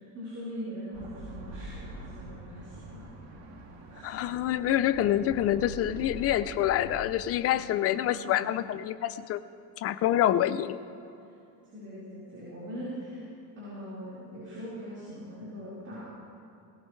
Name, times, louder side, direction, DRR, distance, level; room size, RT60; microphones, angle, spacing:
voice 1, 0.1-3.1 3.9-4.2 7.5-8.6 11.7-13.2 13.5-16.0, equal, 35° right, -10 dB, 4.5 m, -41 dB
sound 1, 0.9-7.0, right 1 dB, 80° right, 1.8 m, -44 dB
voice 2, 4.0-9.4 9.8-10.8, left 12 dB, 40° left, 12 dB, 0.4 m, -27 dB
19.0 x 18.0 x 3.2 m, 2.7 s
cardioid pair, 165°, 40 cm